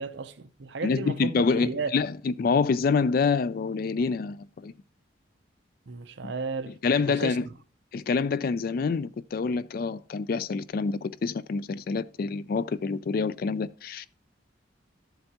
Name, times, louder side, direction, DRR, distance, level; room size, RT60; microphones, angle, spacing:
voice 1, 0.0-1.9 5.9-7.4, right 4 dB, 60° right, 0.6 m, -34 dB
voice 2, 0.8-4.7 6.2-6.3 6.7-7.5 7.9-14.1, left 4 dB, 45° left, 0.3 m, -27 dB
12.0 x 7.8 x 2.8 m
head